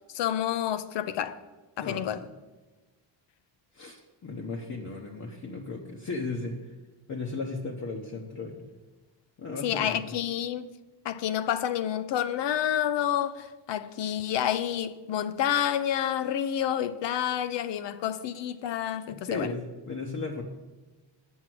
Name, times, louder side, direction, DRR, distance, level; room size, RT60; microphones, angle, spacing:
voice 1, 0.1-1.4 1.8-2.2 9.6-10.7 11.0-19.5, left 10 dB, 70° left, 0.7 m, -29 dB
voice 2, 3.7-6.7 7.1-8.7 9.4-10.0 19.2-20.4, left 3 dB, 40° left, 1.0 m, -35 dB
8.3 x 6.2 x 7.7 m
cardioid pair, 135°, 44 cm